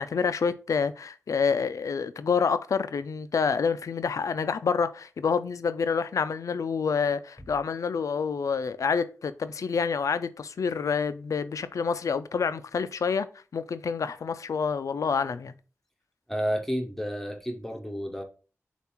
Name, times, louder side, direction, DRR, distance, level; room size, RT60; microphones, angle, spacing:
voice 1, 0.0-13.3 13.5-15.5, left 5 dB, 85° left, 0.3 m, -28 dB
voice 2, 16.3-18.2, equal, 5° left, 0.6 m, -31 dB
6.7 x 2.4 x 3.0 m
wide cardioid pair, 75°, 5 cm